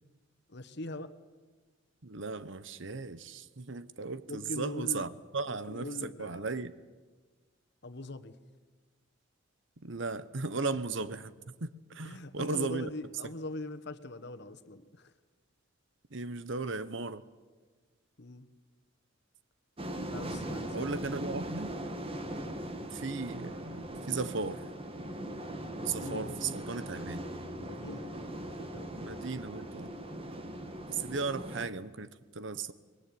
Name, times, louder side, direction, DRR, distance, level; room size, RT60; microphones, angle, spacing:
voice 1, 0.5-1.1 4.3-5.2 5.5-6.6 7.8-8.4 12.0-15.1 18.2-18.5 20.1-21.1 22.4-22.6 25.9-26.6 27.5-29.0, left 2 dB, 60° left, 10 dB, 1.5 m, -42 dB
voice 2, 2.0-6.7 9.8-12.9 16.1-17.2 20.7-21.7 22.9-24.7 25.8-27.2 29.0-29.9 30.9-32.7, right 4 dB, 65° right, 15 dB, 1.1 m, -36 dB
sound 1, 19.8-31.7, right 1 dB, 30° right, 1.9 m, -40 dB
25.0 x 22.0 x 9.5 m, 1.4 s
head